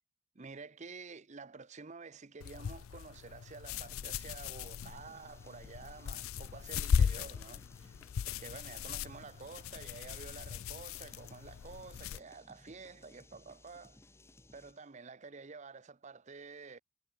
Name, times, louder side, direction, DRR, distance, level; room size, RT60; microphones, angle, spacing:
voice 1, 0.3-14.0 14.5-16.8, right 4 dB, 35° right, 0.7 m, -50 dB
sound 1, 2.4-12.2, left 7 dB, 75° left, 0.4 m, -37 dB
Nu Metal - Drum N Bass Loop, 3.7-14.9, left 1 dB, 10° left, 1.0 m, -60 dB
head